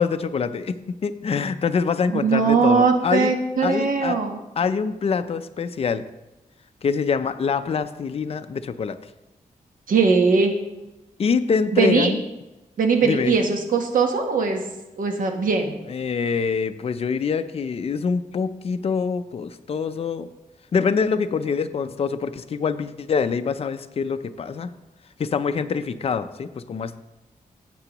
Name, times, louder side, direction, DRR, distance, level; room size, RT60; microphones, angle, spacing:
voice 1, 0.0-3.3 3.6-4.2 4.6-6.0 6.8-9.0 11.2-12.2 13.0-13.4 15.9-20.3 20.7-24.7 25.2-27.0, left 5 dB, 45° left, 9 dB, 0.5 m, -25 dB
voice 2, 2.1-4.4 9.9-10.5 11.7-12.1 12.8-14.6 15.0-15.8, right 5 dB, 70° right, 4 dB, 1.2 m, -20 dB
16.0 x 6.8 x 3.0 m, 1.0 s
wide cardioid pair, 145°, 14 cm